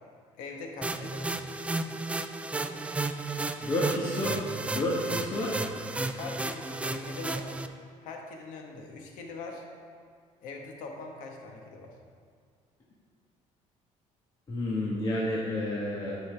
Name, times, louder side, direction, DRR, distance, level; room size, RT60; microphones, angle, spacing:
voice 1, 0.4-1.4 6.2-7.5 8.0-9.6 10.4-11.9, left 3 dB, 90° left, 1 dB, 1.3 m, -42 dB
sound 1, 0.8-7.7, right 2 dB, 10° right, 0.3 m, -33 dB
voice 2, 3.6-4.4 4.7-5.6 14.5-16.2, left 1 dB, 30° left, -6 dB, 1.3 m, -30 dB
13.0 x 5.6 x 3.3 m, 2.1 s
cardioid pair, 130°, 13 cm